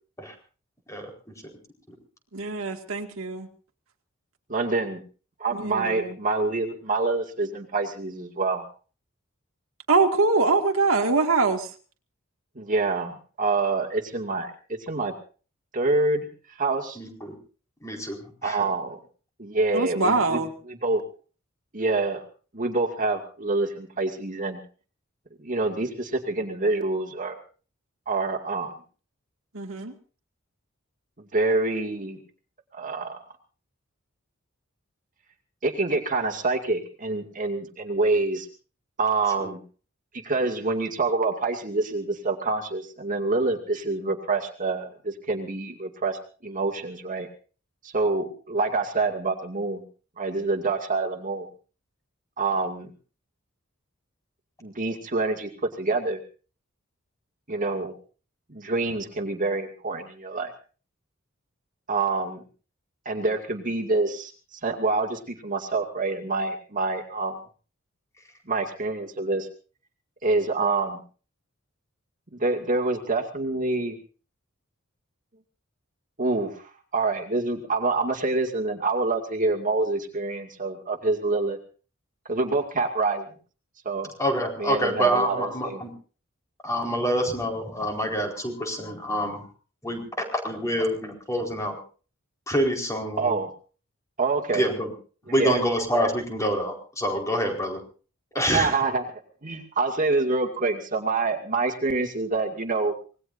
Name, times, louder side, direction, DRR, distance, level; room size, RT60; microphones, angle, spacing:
voice 1, 2.3-3.5 5.5-6.1 9.9-11.7 19.7-20.5 29.5-29.9, right 3 dB, 85° right, 4 dB, 2.1 m, -23 dB
voice 2, 4.5-5.0 5.4-8.6 12.6-14.5 14.9-15.1 15.7-17.0 18.4-19.0 19.4-21.0 21.7-22.2 22.5-24.6 25.4-27.4 28.1-28.7 31.2-32.2 32.7-33.2 35.6-38.5 39.0-39.6 40.2-47.3 47.8-49.8 50.2-51.5 52.4-52.9 54.6-55.5 55.8-56.2 57.5-57.9 58.5-60.5 61.9-62.4 63.1-67.4 68.5-69.5 70.2-71.0 72.3-74.0 76.2-81.6 82.3-83.3 83.8-84.1 84.6-85.8 93.2-93.5 94.2-94.6 95.3-95.6 98.5-99.1 99.4-102.9, right 3 dB, 40° right, 3 dB, 2.4 m, -26 dB
voice 3, 16.9-17.3 17.8-18.7 39.4-39.5 84.2-85.9 86.6-89.4 89.8-91.8 92.5-93.3 94.5-94.9 95.2-97.8 98.3-98.8, equal, 15° left, 2 dB, 4.6 m, -26 dB
25.5 x 20.0 x 2.7 m, 0.39 s
head